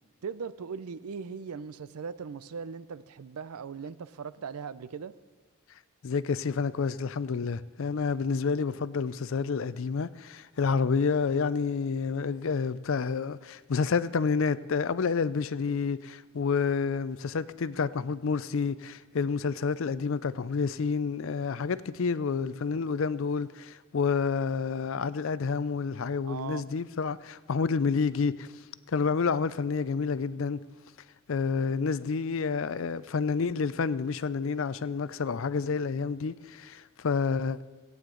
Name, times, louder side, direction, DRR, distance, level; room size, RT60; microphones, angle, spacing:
voice 1, 0.2-5.1 26.3-26.7, right 6 dB, 80° right, 0.5 m, -39 dB
voice 2, 6.0-28.5 28.9-30.6 31.3-37.6, left 5 dB, 60° left, 0.4 m, -29 dB
17.5 x 9.3 x 3.8 m
head